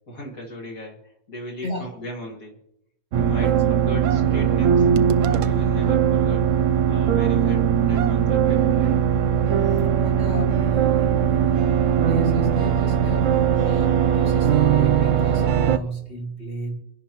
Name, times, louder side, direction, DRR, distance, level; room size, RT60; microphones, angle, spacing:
voice 1, 0.1-2.6 3.1-4.9 5.3-6.5 6.9-8.9, left 1 dB, 65° left, -2 dB, 2.6 m, -37 dB
sound 1, 3.1-15.8, right 8 dB, 65° right, 1.0 m, -19 dB
voice 2, 10.0-11.7 12.1-13.3 13.6-16.8, right 1 dB, 45° left, -2 dB, 2.3 m, -35 dB
27.5 x 11.0 x 3.0 m, 0.84 s
omnidirectional pair, 1.6 m